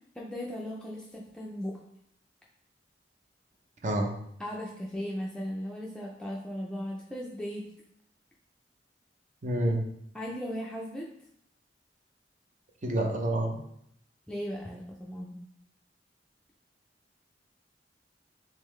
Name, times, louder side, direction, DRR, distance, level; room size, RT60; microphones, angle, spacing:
voice 1, 0.1-1.8 4.4-7.6 10.1-11.1 14.3-15.4, equal, 5° left, -4 dB, 0.4 m, -37 dB
voice 2, 9.4-9.8 12.8-13.6, right 1 dB, 45° right, 2 dB, 0.6 m, -28 dB
3.7 x 3.1 x 3.2 m, 0.73 s
head